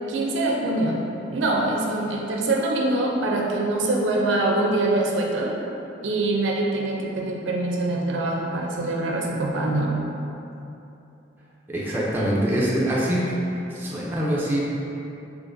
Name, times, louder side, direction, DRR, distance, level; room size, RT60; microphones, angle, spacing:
voice 1, 0.1-1.0 1.3-5.6 6.0-9.9, right 2 dB, 80° right, -1 dB, 0.5 m, -24 dB
voice 2, 11.7-13.3 13.7-14.6, right 1 dB, 10° right, -6 dB, 0.4 m, -24 dB
3.9 x 3.0 x 2.5 m, 2.8 s
head